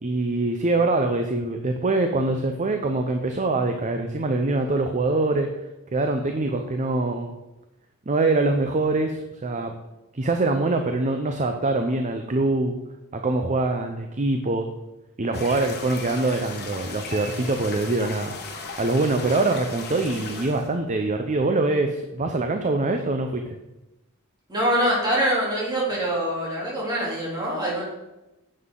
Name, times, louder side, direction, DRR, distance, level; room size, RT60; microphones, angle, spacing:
voice 1, 0.0-5.5 5.9-7.4 8.1-9.7 10.1-12.7 13.1-14.7 15.2-18.4 18.8-23.4, right 2 dB, 35° right, 5 dB, 0.6 m, -24 dB
sound 1, 15.3-20.7, left 3 dB, 50° left, 1.5 m, -37 dB
voice 2, 24.5-27.8, right 1 dB, 20° right, -5 dB, 3.2 m, -24 dB
9.6 x 7.7 x 3.8 m, 0.99 s
head